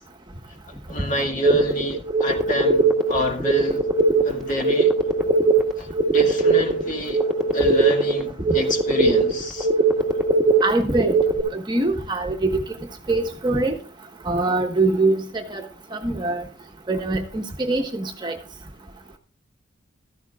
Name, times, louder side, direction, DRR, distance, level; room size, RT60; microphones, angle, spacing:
voice 1, 0.9-3.9 4.2-4.9 5.8-7.2 7.5-9.7, equal, 40° left, 2.2 m, -27 dB
sound 1, 1.4-11.4, right 3 dB, ahead, 1.7 m, -20 dB
voice 2, 10.6-11.2 11.5-12.6 13.1-13.7 14.2-16.4 16.9-18.4, right 2 dB, 20° right, 1.2 m, -23 dB
15.5 x 13.5 x 2.4 m
head